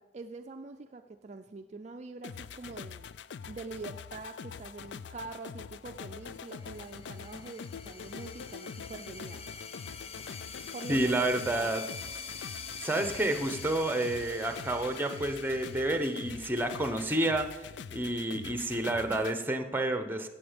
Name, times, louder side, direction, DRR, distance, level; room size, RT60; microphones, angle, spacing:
voice 1, 0.0-3.1 3.5-9.4 10.7-11.7, right 3 dB, 40° right, 6 dB, 0.4 m, -44 dB
sound 1, 2.2-19.4, left 6 dB, 75° left, 0.4 m, -44 dB
sound 2, 6.3-17.6, left 5 dB, 35° left, 0.7 m, -46 dB
voice 2, 10.9-11.8 12.8-17.5 17.9-20.3, right 1 dB, 10° right, 7 dB, 0.9 m, -29 dB
17.0 x 7.8 x 5.2 m, 1.1 s
head